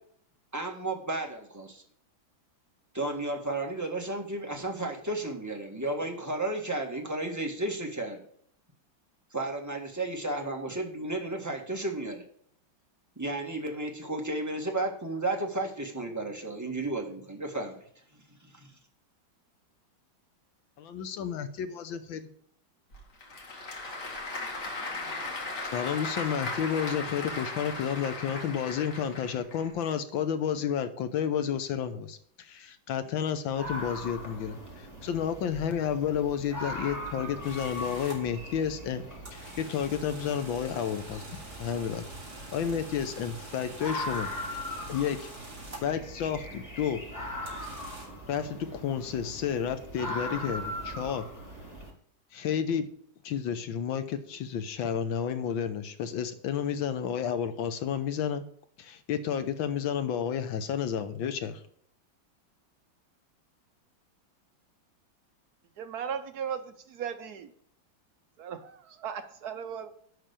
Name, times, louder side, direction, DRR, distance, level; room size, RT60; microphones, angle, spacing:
voice 1, 0.5-1.8 2.9-8.2 9.3-12.2 13.2-17.8 18.4-18.7, right 2 dB, 10° right, 1 dB, 1.4 m, -33 dB
voice 2, 20.8-22.2 25.7-39.0 39.3-41.2 41.6-42.0 42.5-44.3 44.9-45.3 45.7-47.0 48.3-51.3 52.3-52.9 53.2-58.4 58.8-61.6, left 8 dB, 80° left, 10 dB, 1.7 m, -31 dB
Applause / Crowd, 22.9-29.7, left 3 dB, 55° left, 2.6 m, -37 dB
sound 1, 33.5-51.9, left 1 dB, 10° left, 2.4 m, -40 dB
sound 2, 37.4-38.2 39.2-46.0 47.5-48.0, right 2 dB, 35° right, 3.4 m, -47 dB
voice 3, 65.8-67.5 68.4-70.0, right 7 dB, 60° right, 8 dB, 1.1 m, -37 dB
11.0 x 4.0 x 6.7 m, 0.62 s
omnidirectional pair, 2.1 m